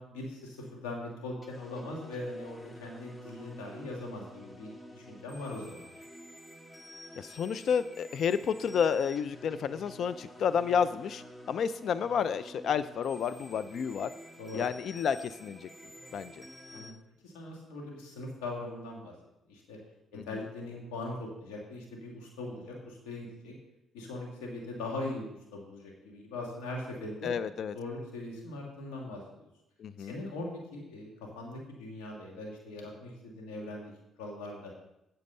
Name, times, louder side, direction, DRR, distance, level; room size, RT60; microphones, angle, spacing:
voice 1, 0.0-6.1 14.4-14.6 16.7-16.9 17.2-19.1 19.5-19.8 20.2-23.6 23.9-27.3 27.7-29.4 30.0-31.1 31.3-33.9 34.2-34.7, left 2 dB, 90° left, -1 dB, 2.0 m, -40 dB
sound 1, 1.4-16.9, equal, 20° left, 1.6 m, -50 dB
voice 2, 7.2-14.1 14.5-15.7 16.1-16.5 20.2-20.4 27.2-27.7 29.8-30.2, left 7 dB, 65° left, 14 dB, 0.4 m, -30 dB
8.3 x 7.8 x 5.5 m, 0.87 s
supercardioid pair, 60°, 0 cm